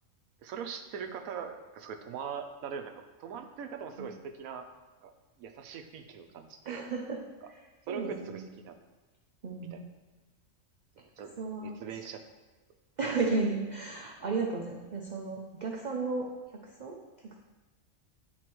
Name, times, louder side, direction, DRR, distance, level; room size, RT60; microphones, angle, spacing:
voice 1, 0.4-4.7 5.0-5.1 5.4-6.8 7.9-8.8 9.7-9.8 11.2-11.3 11.6-12.2, right 6 dB, 80° right, 6 dB, 1.1 m, -41 dB
voice 2, 6.7-8.5 9.4-9.8 11.4-11.8 13.0-16.3 16.6-17.0 17.2-17.4, right 3 dB, 55° right, 0 dB, 0.5 m, -34 dB
10.5 x 4.2 x 3.0 m, 1.2 s
omnidirectional pair, 1.5 m